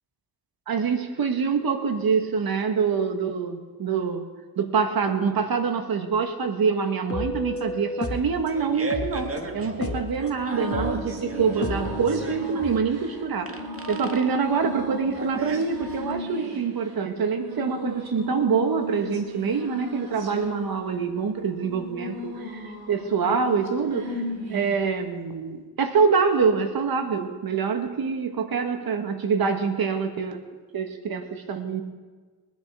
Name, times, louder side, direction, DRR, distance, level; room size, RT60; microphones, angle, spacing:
voice 1, 0.7-4.3 4.6-13.6 13.9-24.1 24.5-31.8, right 5 dB, 70° right, 6 dB, 1.7 m, -25 dB
sound 1, 7.1-8.4 8.9-10.2 10.7-12.3, left 2 dB, 40° left, 1.9 m, -32 dB
Fart, 8.2-16.2, right 3 dB, 35° right, 1.9 m, -36 dB
sound 2, 10.5-24.9, equal, 85° right, 2.5 m, -36 dB
22.5 x 10.0 x 3.7 m, 1.4 s
cardioid pair, 50°, 37 cm